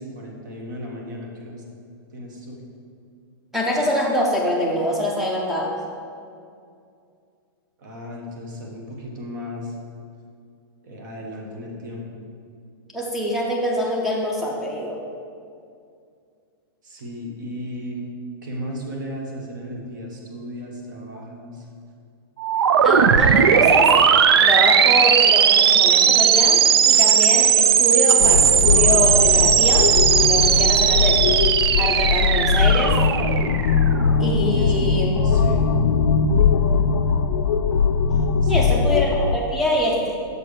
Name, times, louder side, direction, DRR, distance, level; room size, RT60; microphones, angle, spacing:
voice 1, 0.0-1.6 2.1-2.6 7.8-9.8 10.8-12.1 16.8-18.0 18.4-21.7 34.5-34.9 35.2-35.6 38.4-38.9, equal, 50° right, 0 dB, 1.2 m, -35 dB
voice 2, 3.5-5.8 12.9-15.0 22.8-23.9 24.4-29.9 30.2-31.2 31.8-33.0 34.2-35.1 38.5-40.2, equal, ahead, -2 dB, 0.5 m, -24 dB
sound 1, 22.4-34.1, right 8 dB, 85° right, 0.4 m, -17 dB
sound 2, 28.2-39.4, left 5 dB, 80° left, 0.4 m, -20 dB
6.8 x 4.4 x 4.9 m, 2.3 s
supercardioid pair, 180°, 13 cm